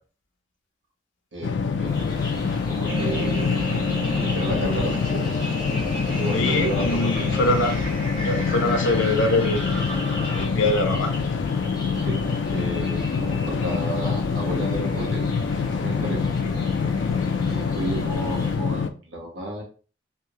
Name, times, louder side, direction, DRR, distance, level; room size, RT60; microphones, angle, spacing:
voice 1, 1.3-2.2 2.7-3.6 4.1-5.3 6.1-7.1 11.9-12.2 12.5-15.2 15.8-16.2 17.4-19.6, right 1 dB, 80° right, -1 dB, 1.3 m, -32 dB
sound 1, 1.4-18.9, left 5 dB, 70° left, 0.3 m, -25 dB
sound 2, 1.8-18.6, left 1 dB, 20° left, 0.9 m, -36 dB
sound 3, 2.8-10.5, right 1 dB, 25° right, 1.4 m, -33 dB
voice 2, 6.3-7.8 8.1-9.9 10.3-11.1 16.4-16.6, left 2 dB, 90° left, 5 dB, 0.7 m, -24 dB
3.3 x 2.6 x 3.0 m, 0.37 s
head